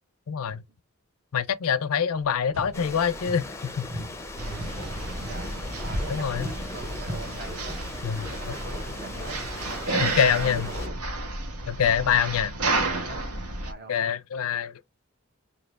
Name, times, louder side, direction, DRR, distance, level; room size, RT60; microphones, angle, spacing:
voice 1, 0.3-0.6 1.3-4.1 6.1-6.5 8.0-8.3 9.9-10.7 11.7-12.5 13.9-14.7, left 7 dB, 75° left, 0.4 m, -25 dB
sound 1, 2.5-3.6 3.9-8.0, left 1 dB, 70° right, 2.3 m, -40 dB
sound 2, 2.7-10.9, left 2 dB, 10° left, 0.5 m, -39 dB
sound 3, 4.4-13.7, right 2 dB, 90° right, 1.2 m, -31 dB
voice 2, 4.7-9.5 10.1-11.1 12.6-13.3 13.6-14.0, right 3 dB, 45° right, 1.0 m, -42 dB
3.3 x 2.8 x 3.9 m
head